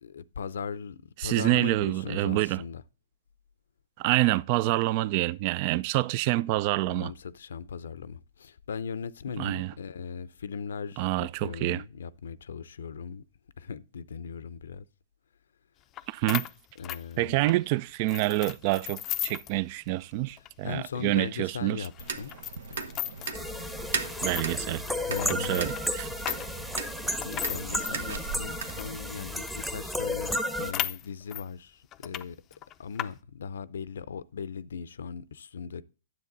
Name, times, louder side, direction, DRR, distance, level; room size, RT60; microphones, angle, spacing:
voice 1, 0.0-2.8 6.9-13.2 13.6-14.9 16.8-17.5 20.3-21.9 22.2-22.3 22.8-23.0 25.1-25.7 26.4-26.5 27.1-32.4 32.8-35.8, left 6 dB, 75° left, 0.5 m, -38 dB
voice 2, 1.2-2.6 4.0-7.1 9.4-9.7 11.0-11.8 16.1-16.5 17.2-21.9 24.2-24.8 25.3-26.1, right 17 dB, 40° right, 0.3 m, -27 dB
sound 1, 16.0-16.1 16.3-17.6 18.1-19.6 19.9-20.0 20.4-20.5 21.1-21.2 21.8-23.4 24.0-29.0 29.5-29.6 29.8-29.9 30.1-31.5 31.9-32.2 32.5-33.1, left 12 dB, 25° left, 0.5 m, -36 dB
sound 2, 22.0-29.0, right 5 dB, 75° right, 1.1 m, -38 dB
sound 3, 23.3-30.7, left 1 dB, 5° right, 0.8 m, -33 dB
9.9 x 7.4 x 4.0 m
hypercardioid pair, 135°, 0 cm